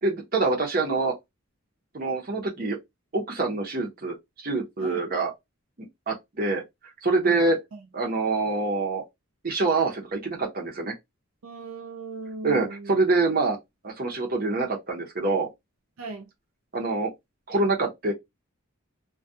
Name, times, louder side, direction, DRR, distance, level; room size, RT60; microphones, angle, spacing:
voice 1, 0.0-1.1 1.9-2.8 3.1-5.3 5.8-6.6 7.0-7.6 7.9-9.0 9.4-10.9 12.4-13.6 13.8-15.5 16.7-17.1 17.5-18.1, right 3 dB, 40° right, 0.7 m, -25 dB
voice 2, 11.4-12.9 16.0-16.3, right 3 dB, 70° right, 0.4 m, -38 dB
2.3 x 2.2 x 2.6 m
head